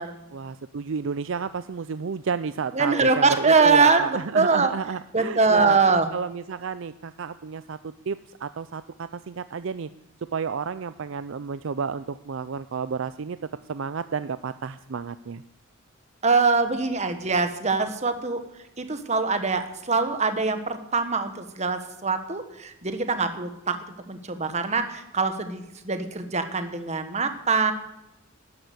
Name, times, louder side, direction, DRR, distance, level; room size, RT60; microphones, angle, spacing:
voice 1, 0.3-5.8 6.1-9.9 10.3-13.4 13.7-15.4, right 5 dB, 60° right, 13 dB, 0.5 m, -31 dB
voice 2, 2.7-4.7 5.1-6.1 16.2-18.4 18.8-23.8 24.1-27.7, right 4 dB, 35° right, 8 dB, 1.4 m, -23 dB
13.0 x 11.0 x 8.1 m, 0.86 s
head